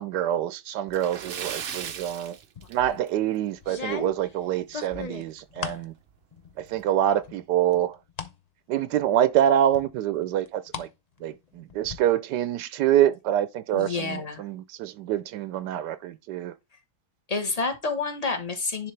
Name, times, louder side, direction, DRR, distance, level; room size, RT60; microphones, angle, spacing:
voice 1, 0.0-2.4 2.7-5.9 6.6-8.0 8.7-10.9 11.2-16.5, right 11 dB, 85° right, 1.2 m, -26 dB
Splash splatter, 0.9-3.3 3.6-3.7 4.2-4.3 5.7-5.8 6.1-6.2 6.9-7.1, right 8 dB, 65° right, 0.5 m, -37 dB
sound 1, 2.6-3.0 3.6-5.9 6.3-6.9 7.2-8.4 8.8-8.9 9.7-10.9 11.2-12.0, left 5 dB, 55° left, 0.4 m, -37 dB
voice 2, 13.7-14.4 17.3-18.9, left 4 dB, 25° left, 1.0 m, -29 dB
10.0 x 3.4 x 3.2 m
omnidirectional pair, 1.8 m